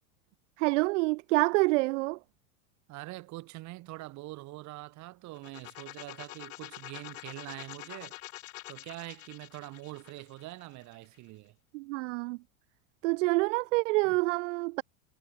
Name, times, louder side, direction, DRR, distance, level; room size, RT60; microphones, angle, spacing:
voice 1, 0.6-2.2 11.7-12.4 13.0-14.8, right 24 dB, 60° right, 0.7 m, -27 dB
voice 2, 2.9-8.2 8.7-11.6 14.0-14.2, right 19 dB, 40° right, 5.2 m, -44 dB
sound 1, 5.3-11.2, left 20 dB, 70° left, 5.2 m, -46 dB
supercardioid pair, 140°, 42 cm